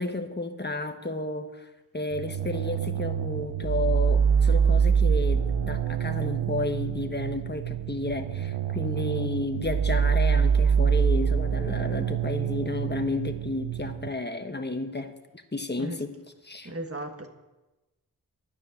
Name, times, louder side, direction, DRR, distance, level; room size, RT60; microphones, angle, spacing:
voice 1, 0.0-1.7 1.9-16.1 16.4-16.7, left 2 dB, 25° left, 1.2 m, -32 dB
sound 1, 2.1-14.1, right 7 dB, 85° right, 0.6 m, -25 dB
voice 2, 16.6-17.3, right 1 dB, 35° right, 1.4 m, -35 dB
12.0 x 9.7 x 6.5 m
wide cardioid pair, 50°, 39 cm